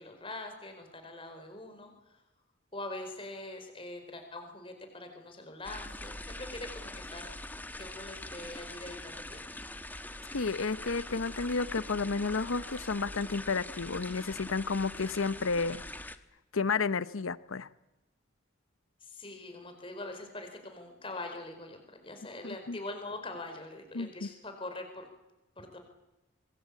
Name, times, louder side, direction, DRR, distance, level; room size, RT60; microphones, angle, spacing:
voice 1, 0.0-2.2 2.7-7.3 7.8-9.5 19.0-25.1 25.6-25.8, left 2 dB, 25° left, 5 dB, 4.5 m, -43 dB
sound 1, 5.6-16.2, left 1 dB, 10° left, 1.1 m, -43 dB
voice 2, 10.3-15.8 16.5-17.7 22.4-22.8 23.9-24.3, left 4 dB, 85° left, 16 dB, 0.8 m, -31 dB
25.5 x 21.0 x 8.5 m, 0.99 s
head